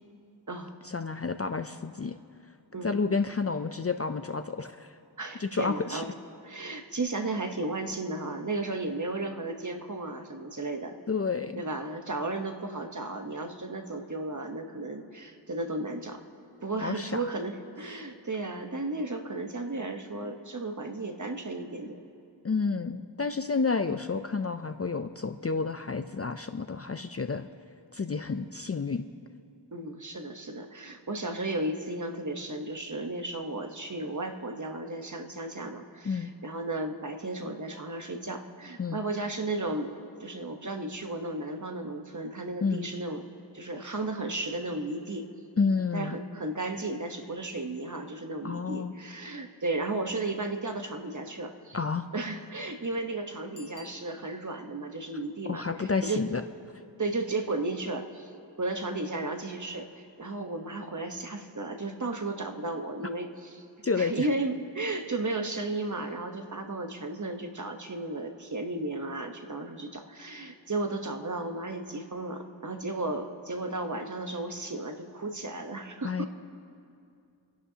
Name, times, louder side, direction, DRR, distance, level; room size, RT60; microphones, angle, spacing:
voice 1, 0.8-2.2 2.8-4.9 5.4-6.0 11.1-11.6 16.8-17.2 22.4-27.5 27.9-29.1 36.0-36.3 38.8-39.0 42.6-42.9 45.6-46.1 48.4-48.9 51.7-52.1 55.5-56.4 63.8-64.3 76.0-76.3, left 4 dB, 35° left, 8 dB, 0.4 m, -30 dB
voice 2, 5.2-6.1 6.4-10.9 11.6-16.2 16.6-22.0 29.7-39.9 40.2-43.3 43.5-45.3 45.9-51.8 52.1-56.2 57.0-58.3 58.6-63.6 64.0-76.3, right 2 dB, 40° right, 4 dB, 1.1 m, -34 dB
Bicycle bell, 53.5-54.7 60.1-60.2, left 2 dB, 85° left, 1.3 m, -53 dB
29.0 x 11.0 x 2.8 m, 2.4 s
wide cardioid pair, 50°, 45 cm